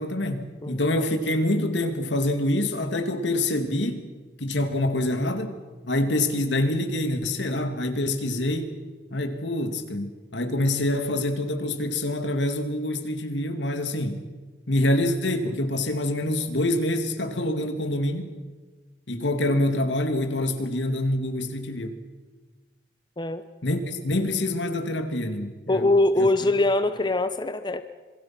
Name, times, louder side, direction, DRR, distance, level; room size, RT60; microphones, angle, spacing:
voice 1, 0.0-4.0 4.4-5.5 5.8-8.7 9.1-14.2 14.7-18.3 19.1-22.0 23.6-25.9 26.2-26.3, left 1 dB, 80° left, 7 dB, 2.4 m, -26 dB
voice 2, 25.7-27.8, left 2 dB, 25° left, 10 dB, 0.8 m, -22 dB
27.0 x 22.5 x 6.0 m, 1.3 s
head